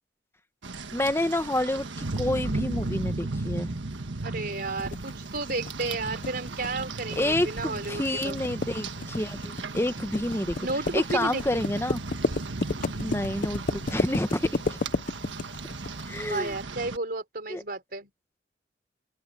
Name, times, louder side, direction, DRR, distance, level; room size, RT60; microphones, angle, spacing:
Rain, 0.6-17.0, right 3 dB, 85° right, 1.5 m, -36 dB
voice 1, 0.9-3.8 7.2-10.6 10.9-12.0 13.0-14.8 16.1-16.5 17.5-17.6, left 1 dB, 15° left, 1.2 m, -29 dB
voice 2, 4.2-8.4 10.6-11.6 16.2-18.1, right 3 dB, 55° right, 4.3 m, -32 dB
sound 1, 4.8-16.4, left 3 dB, 45° left, 0.6 m, -32 dB
open air
head